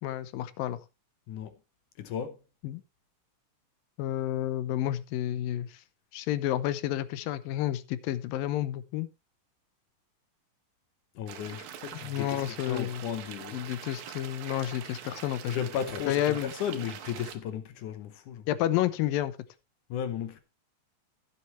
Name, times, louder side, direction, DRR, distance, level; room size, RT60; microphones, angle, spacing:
voice 1, 0.0-0.8 2.6-2.8 4.0-5.7 6.1-9.1 12.0-13.0 13.5-15.5 16.1-16.5 18.5-19.3, left 13 dB, 90° left, 2.6 m, -30 dB
voice 2, 2.0-2.4 11.2-13.6 15.4-18.5 19.9-20.4, left 9 dB, 70° left, 2.3 m, -35 dB
sound 1, 11.3-17.4, right 10 dB, 85° right, 3.0 m, -44 dB
16.0 x 8.0 x 3.1 m
omnidirectional pair, 4.0 m